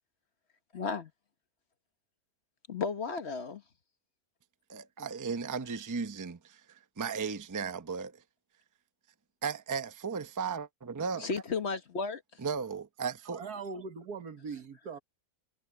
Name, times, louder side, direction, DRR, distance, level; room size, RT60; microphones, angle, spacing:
voice 1, 0.7-1.1 2.7-3.6 11.2-12.2, left 4 dB, 45° left, 1.4 m, -33 dB
voice 2, 4.7-8.2 9.4-11.3 12.4-13.4, right 5 dB, 20° right, 0.6 m, -36 dB
voice 3, 13.3-15.0, right 5 dB, 90° right, 2.1 m, -41 dB
omnidirectional pair, 1.6 m